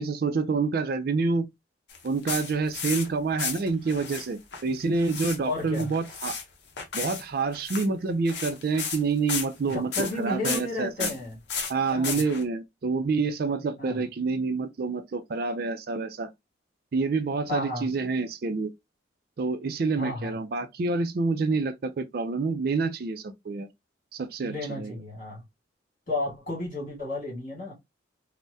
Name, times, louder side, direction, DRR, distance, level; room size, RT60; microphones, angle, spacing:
voice 1, 0.0-1.4 2.0-6.4 6.9-11.1 11.7-16.3 16.9-18.7 19.4-23.7 24.1-24.9, right 4 dB, 50° right, 0.4 m, -28 dB
sound 1, 1.9-3.1 3.4-4.3 4.5-5.4 5.6-6.4 6.8-7.2 7.5-7.9 8.3-9.0 9.3-10.2 10.4-10.6 11.0-11.2 11.5-12.4, left 6 dB, 60° left, 0.7 m, -33 dB
voice 2, 5.4-5.9 9.6-11.4 11.9-12.2 13.8-14.0 17.5-17.9 20.0-20.4 24.4-25.4 26.1-27.7, left 2 dB, 45° left, 2.0 m, -32 dB
3.4 x 2.1 x 2.6 m
head